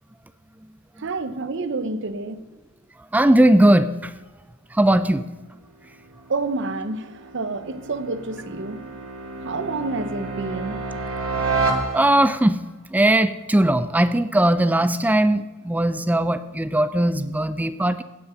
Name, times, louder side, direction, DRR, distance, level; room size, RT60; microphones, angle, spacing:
voice 1, 1.0-2.4 6.3-8.8 9.4-10.8, right 3 dB, 55° right, 12 dB, 0.8 m, -28 dB
voice 2, 3.1-4.1 4.7-5.3 11.9-12.6 12.9-18.0, right 1 dB, 5° right, 13 dB, 0.3 m, -19 dB
sound 1, 6.0-12.5, right 3 dB, 70° right, 2.2 m, -30 dB
16.5 x 6.0 x 6.3 m, 1.2 s
head